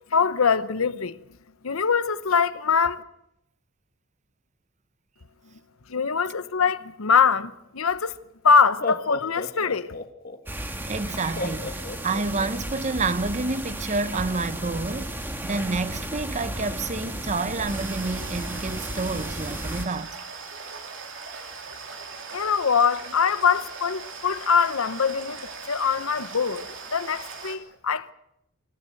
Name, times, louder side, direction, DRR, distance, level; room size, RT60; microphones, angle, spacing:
voice 1, 0.1-1.2 1.6-3.0 5.9-8.1 8.4-9.9 22.3-26.6 26.9-28.1, left 6 dB, 80° left, 0.9 m, -23 dB
Laughter, 7.9-8.0 8.6-10.4 11.4-12.6, left 3 dB, 45° left, 1.5 m, -33 dB
sound 1, 10.5-19.9, right 1 dB, 10° right, 1.5 m, -34 dB
voice 2, 10.9-20.2, right 3 dB, 35° right, 0.7 m, -29 dB
sound 2, 17.7-27.6, right 4 dB, 60° right, 3.1 m, -40 dB
26.0 x 14.0 x 7.8 m
head